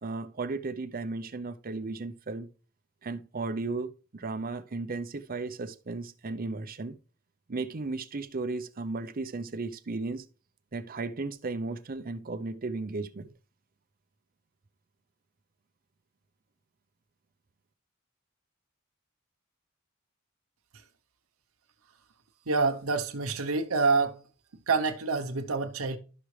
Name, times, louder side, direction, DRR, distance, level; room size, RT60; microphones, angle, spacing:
voice 1, 0.0-2.5 3.0-7.0 7.5-10.2 10.7-13.3, right 3 dB, 45° right, 0.6 m, -35 dB
voice 2, 22.5-24.2 24.7-26.0, right 4 dB, 90° right, 0.9 m, -27 dB
12.0 x 6.0 x 3.2 m
head